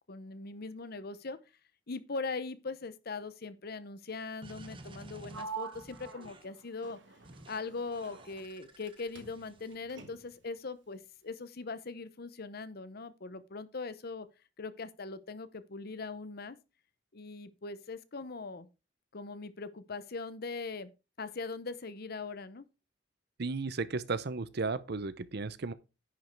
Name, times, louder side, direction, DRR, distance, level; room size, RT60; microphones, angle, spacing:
voice 1, 0.1-1.4 1.9-7.0 7.5-14.3 14.6-16.6 17.1-18.7 19.1-20.9 21.2-22.6, left 4 dB, 55° left, 0.8 m, -41 dB
sound 1, 4.4-6.6 7.2-7.6 7.9-9.8, right 1 dB, 30° right, 1.2 m, -52 dB
Sliding door, 5.3-8.9 9.2-10.5, right 5 dB, 80° right, 1.6 m, -47 dB
voice 2, 23.4-25.7, right 3 dB, 60° right, 0.7 m, -34 dB
10.0 x 5.3 x 4.6 m
head